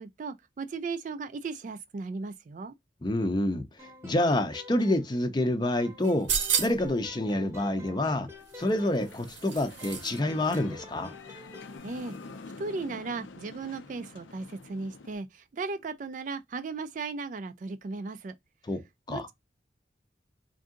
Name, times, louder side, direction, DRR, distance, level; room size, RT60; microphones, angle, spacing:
voice 1, 0.0-2.7 11.8-12.2 12.6-18.4 19.1-19.3, right 4 dB, 45° right, 0.3 m, -36 dB
voice 2, 3.0-3.7 4.0-6.3 6.6-8.3 8.6-11.1 18.7-18.8 19.1-19.3, left 1 dB, 25° left, 0.5 m, -27 dB
sound 1, 3.8-5.5 5.8-9.4 9.8-11.8, left 2 dB, 15° right, 0.9 m, -49 dB
sound 2, 6.0-7.0 8.5-10.2 10.5-10.6, right 7 dB, 80° right, 0.8 m, -32 dB
sound 3, 8.6-15.1, left 3 dB, 85° left, 0.6 m, -47 dB
3.6 x 2.6 x 3.7 m
head